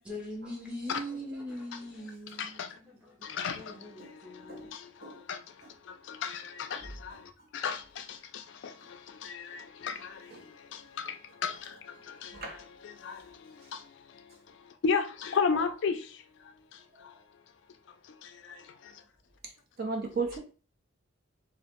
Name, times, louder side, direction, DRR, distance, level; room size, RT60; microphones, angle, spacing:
voice 1, 0.0-3.2 3.6-4.7, equal, 5° right, 0.6 m, -41 dB
voice 2, 2.4-2.8 3.2-12.6 12.8-16.2 16.7-17.2 18.1-19.0, left 5 dB, 60° left, 0.3 m, -36 dB
voice 3, 6.8-7.2 8.8-8.9 9.9-10.0 10.3-10.5 12.3-12.6 15.5-15.6 17.0-17.1 19.8-20.4, right 4 dB, 50° right, 0.5 m, -36 dB
2.0 x 2.0 x 2.9 m
head